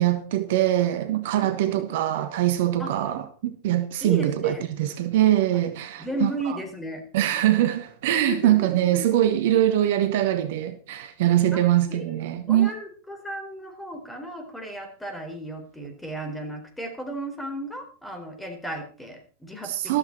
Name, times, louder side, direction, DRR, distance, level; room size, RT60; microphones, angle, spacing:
voice 1, 0.0-6.6 7.1-12.7 19.6-20.0, right 13 dB, 55° right, 1.3 m, -23 dB
voice 2, 1.3-1.8 2.8-2.9 4.0-4.6 6.0-7.0 8.1-9.0 11.5-11.6 11.9-12.2 12.5-20.0, equal, 5° left, 4.3 m, -35 dB
13.5 x 13.5 x 4.4 m
figure-of-eight pair, 90°, 0 cm